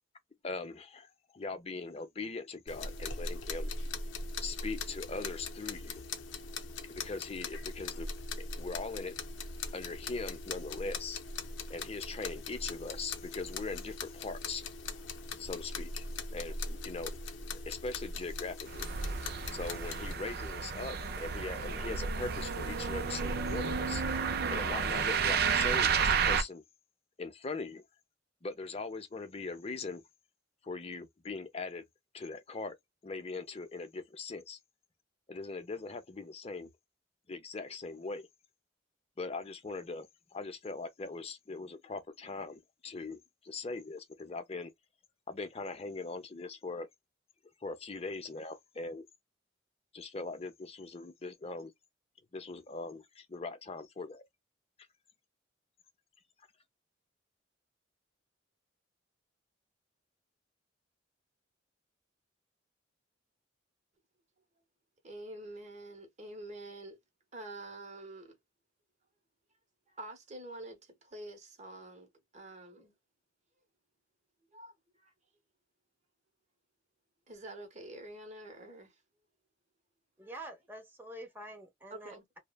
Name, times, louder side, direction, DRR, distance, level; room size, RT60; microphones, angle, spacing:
voice 1, 0.4-3.7 4.4-6.0 6.9-8.1 8.4-9.1 9.7-11.2 11.7-14.6 15.4-17.2 17.7-18.9 19.5-24.0 24.5-26.6 27.2-27.8 28.4-30.0 30.6-31.8 32.1-32.7 33.0-34.6 35.3-36.7 37.3-38.3 39.2-40.1 40.3-44.7 45.3-46.9 47.6-49.1 49.9-51.7 52.3-54.2, left 3 dB, 30° left, 0.6 m, -40 dB
sound 1, 2.7-20.1, left 3 dB, 75° left, 0.6 m, -41 dB
sound 2, 18.7-26.4, right 6 dB, 55° right, 0.4 m, -31 dB
voice 2, 65.0-67.0 67.3-68.4 69.9-72.9 74.5-74.7 75.0-75.1 77.3-79.0 81.9-82.2, right 1 dB, 40° right, 1.0 m, -47 dB
voice 3, 80.2-82.4, right 1 dB, 10° right, 0.9 m, -47 dB
3.1 x 2.1 x 2.2 m
head